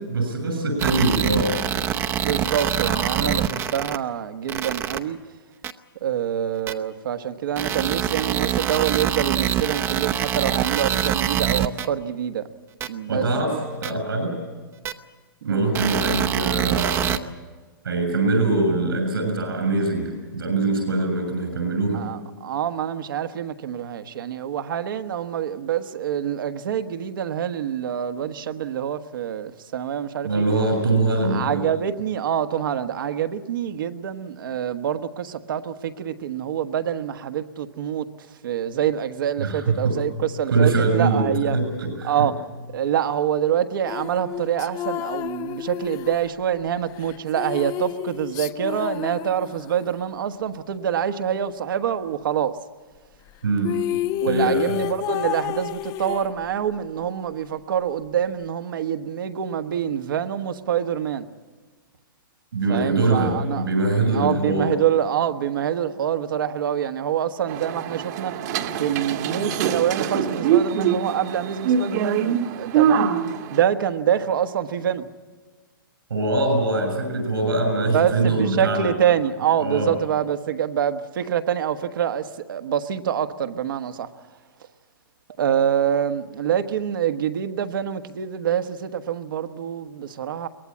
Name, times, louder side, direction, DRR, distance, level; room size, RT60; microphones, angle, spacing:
voice 1, 0.1-1.6 2.8-3.3 13.1-13.5 13.8-14.4 15.4-17.2 17.8-22.0 30.2-31.6 39.4-40.0 40.5-41.3 41.5-42.3 53.4-53.8 54.3-54.8 62.5-64.7 76.1-78.9 79.6-79.9, right 2 dB, 85° right, 6.6 m, -23 dB
sound 1, 0.8-4.0 4.5-5.0 5.6-5.7 6.7-6.8 7.6-11.9 12.8-12.9 13.8-13.9 14.9-15.0 15.7-17.2, right 10 dB, 20° right, 0.8 m, -24 dB
voice 2, 1.9-5.2 6.0-12.5 12.9-13.2 15.4-15.6 21.9-30.4 31.3-41.6 42.0-42.4 42.7-52.6 54.2-61.3 62.7-63.7 64.1-73.2 73.5-75.1 77.9-84.3 85.4-90.5, right 9 dB, 70° right, 1.3 m, -26 dB
sound 2, 43.9-50.0 53.3-53.4 53.6-56.8, left 13 dB, 30° left, 0.6 m, -30 dB
sound 3, 67.5-73.6, right 8 dB, 50° right, 1.4 m, -24 dB
23.0 x 18.5 x 8.4 m
hypercardioid pair, 135°, 12 cm